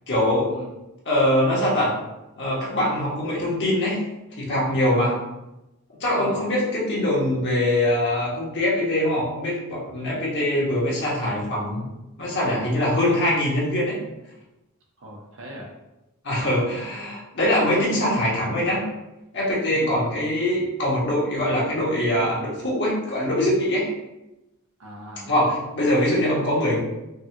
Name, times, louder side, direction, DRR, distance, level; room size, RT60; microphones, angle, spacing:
voice 1, 0.1-0.6 1.0-1.9 2.4-4.0 4.4-5.2 6.0-11.9 12.2-14.0 16.2-18.9 19.3-23.9 25.3-26.8, left 1 dB, 55° left, -6 dB, 1.4 m, -23 dB
voice 2, 15.0-15.7 19.7-20.0 24.8-25.3, equal, 65° right, -1 dB, 0.9 m, -40 dB
5.2 x 2.4 x 2.8 m, 0.96 s
head